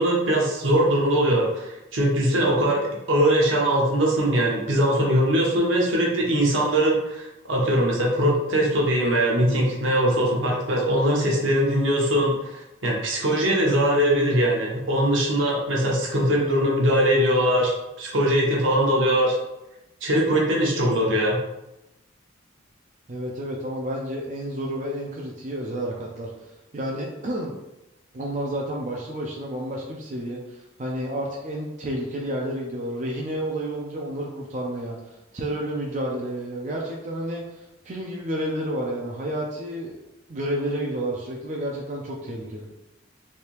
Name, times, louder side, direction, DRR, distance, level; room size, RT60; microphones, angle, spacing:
voice 1, 0.0-19.4 20.0-21.4, right 1 dB, 75° right, -2 dB, 0.9 m, -21 dB
voice 2, 23.1-27.5 28.1-40.0 40.3-42.7, right 1 dB, 40° right, -2 dB, 0.4 m, -30 dB
3.3 x 2.7 x 2.9 m, 0.94 s
head